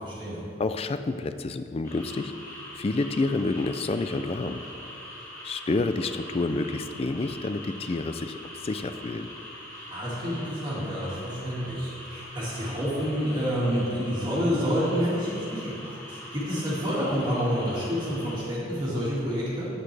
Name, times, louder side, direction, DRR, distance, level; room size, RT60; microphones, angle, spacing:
voice 1, 0.0-0.5 9.9-19.6, equal, 25° right, -9 dB, 2.0 m, -28 dB
voice 2, 0.6-2.3 2.8-4.6 5.4-8.4 8.6-9.3, left 3 dB, 30° left, 10 dB, 0.3 m, -29 dB
sound 1, 1.8-18.4, left 1 dB, 15° left, 1.9 m, -43 dB
9.8 x 8.9 x 3.3 m, 2.7 s
head